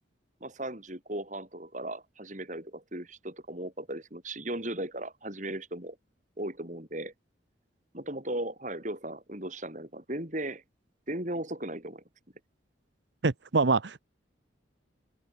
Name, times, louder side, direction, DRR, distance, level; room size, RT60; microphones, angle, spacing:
voice 1, 0.4-6.0 6.4-7.1 7.9-10.6 11.1-12.0, right 1 dB, 40° right, 5.0 m, -37 dB
voice 2, 13.2-14.0, right 3 dB, 70° right, 0.9 m, -25 dB
open air
head